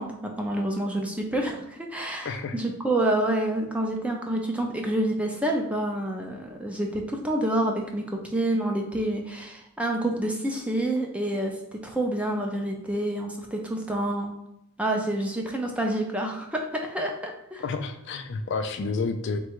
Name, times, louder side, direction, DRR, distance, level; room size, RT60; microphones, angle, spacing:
voice 1, 0.0-14.3 14.8-17.6, right 1 dB, 5° right, 1 dB, 0.5 m, -28 dB
voice 2, 2.2-2.6 17.6-19.4, left 4 dB, 55° left, 7 dB, 0.3 m, -30 dB
3.9 x 2.3 x 4.5 m, 0.84 s
head